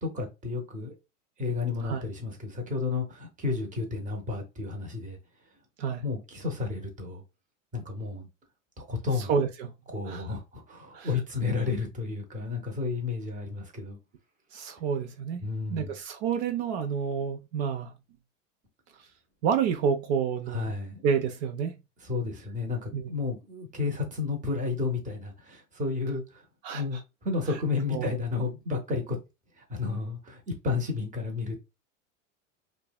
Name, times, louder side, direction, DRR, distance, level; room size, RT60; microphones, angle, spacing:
voice 1, 0.0-0.9 1.4-5.2 6.0-7.2 7.7-8.3 8.8-9.3 9.9-14.0 15.4-15.9 20.5-21.0 22.0-26.2 26.7-29.2 29.6-31.6, left 4 dB, 20° right, 0.8 m, -32 dB
voice 2, 9.2-9.7 10.1-10.3 10.9-11.1 14.5-15.4 15.7-17.9 19.4-20.7 21.0-21.8 22.9-23.1 26.6-27.0 27.9-28.1, right 7 dB, 60° right, 0.5 m, -29 dB
2.6 x 2.1 x 2.2 m
hypercardioid pair, 110°, 39 cm